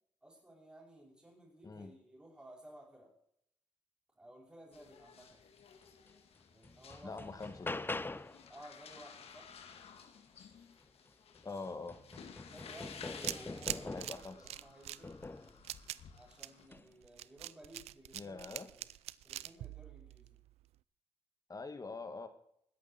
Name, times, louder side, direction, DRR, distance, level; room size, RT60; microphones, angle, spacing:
voice 1, 0.2-3.1 4.1-5.4 6.5-7.3 8.5-9.5 12.4-15.3 16.1-18.9 19.2-20.4, right 1 dB, 15° right, -6 dB, 6.1 m, -56 dB
sound 1, 4.7-16.7, left 6 dB, 75° left, 1.9 m, -55 dB
sound 2, 6.1-6.2 6.6-8.5 10.8-10.9 11.3-14.3 15.0-15.6 16.6-16.9, left 2 dB, 20° left, 0.8 m, -43 dB
voice 2, 7.0-8.0 11.4-12.0 13.8-14.5 18.1-18.7 21.5-22.3, left 3 dB, 35° left, 9 dB, 2.1 m, -44 dB
sound 3, 12.9-20.6, right 14 dB, 90° right, 0.4 m, -44 dB
20.0 x 8.3 x 4.4 m, 0.71 s
cardioid pair, 60°, 10 cm